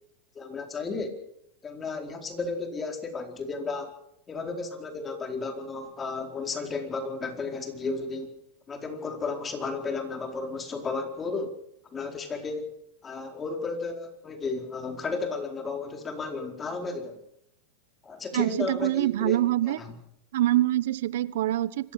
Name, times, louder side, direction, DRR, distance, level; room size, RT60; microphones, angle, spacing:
voice 1, 0.3-1.2 1.6-3.9 4.3-8.3 8.7-11.6 11.9-12.7 13.0-17.2 18.0-19.4 19.7-20.0, left 4 dB, 25° left, 4 dB, 4.5 m, -33 dB
voice 2, 18.3-19.8 20.3-21.9, right 14 dB, 75° right, 18 dB, 1.0 m, -25 dB
26.5 x 15.5 x 7.7 m, 0.77 s
hypercardioid pair, 110°, 0 cm